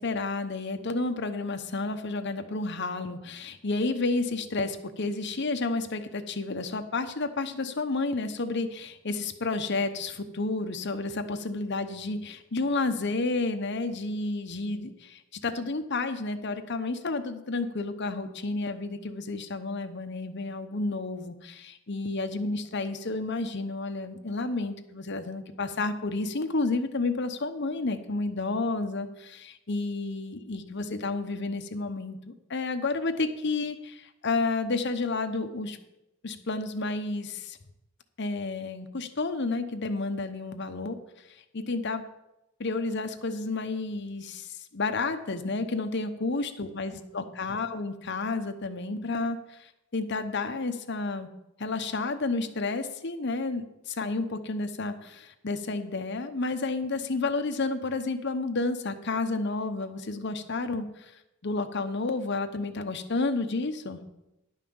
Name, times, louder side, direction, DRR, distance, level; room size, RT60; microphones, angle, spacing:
voice 1, 0.0-35.8 36.2-37.6 38.2-41.0 41.5-42.0 42.6-51.3 51.6-61.1 61.4-64.0, left 3 dB, 55° left, 7 dB, 0.9 m, -31 dB
11.0 x 5.7 x 7.0 m, 0.92 s
head